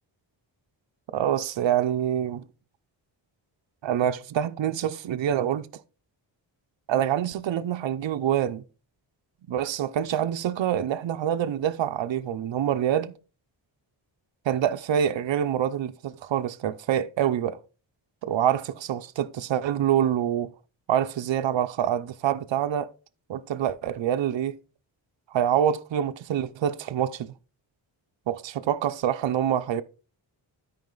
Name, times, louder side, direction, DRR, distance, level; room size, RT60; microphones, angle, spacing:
voice 1, 1.1-2.4 3.8-5.7 6.9-8.6 9.5-13.2 14.5-17.6 18.2-20.5 20.9-22.9 23.3-24.6 25.3-27.3 28.3-29.8, right 10 dB, 70° right, 0.7 m, -26 dB
12.5 x 4.9 x 3.8 m
wide cardioid pair, 165°, 47 cm